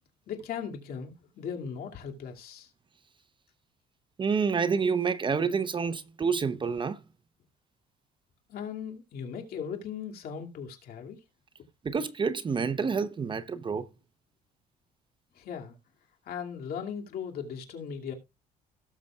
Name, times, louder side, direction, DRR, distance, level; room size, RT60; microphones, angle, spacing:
voice 1, 0.3-2.7 8.5-11.2 15.4-15.7 16.2-18.1, left 7 dB, 65° left, 2.4 m, -38 dB
voice 2, 4.2-7.0 11.8-13.9, right 5 dB, 30° right, 0.7 m, -28 dB
17.5 x 6.8 x 2.3 m
cardioid pair, 110°, 17 cm